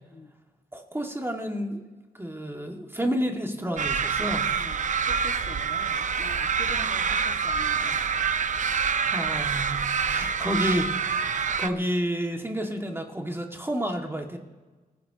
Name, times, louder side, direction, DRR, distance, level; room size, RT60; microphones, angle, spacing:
voice 1, 0.7-1.8 2.1-4.5 9.1-11.3 11.6-14.4, equal, 15° right, 3 dB, 2.0 m, -30 dB
sound 1, 3.8-11.7, right 6 dB, 50° right, 0.7 m, -26 dB
voice 2, 4.5-8.1, left 3 dB, 45° left, 3 dB, 1.8 m, -44 dB
26.5 x 15.5 x 2.9 m, 1.3 s
cardioid pair, 60°, 16 cm